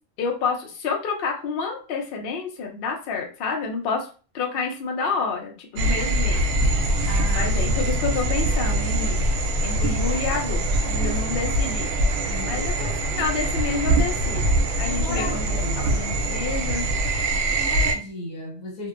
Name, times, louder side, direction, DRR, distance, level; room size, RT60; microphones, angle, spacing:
voice 1, 0.2-4.1 4.3-6.5 7.3-9.3 9.6-11.9 12.5-16.9, left 4 dB, 55° left, 2 dB, 0.7 m, -29 dB
sound 1, 5.8-17.9, right 1 dB, 85° right, 1.0 m, -23 dB
voice 2, 7.1-7.5 12.2-12.6 14.8-16.0 17.3-18.9, left 2 dB, 85° left, 0 dB, 1.3 m, -35 dB
2.6 x 2.1 x 2.4 m, 0.36 s
omnidirectional pair, 1.4 m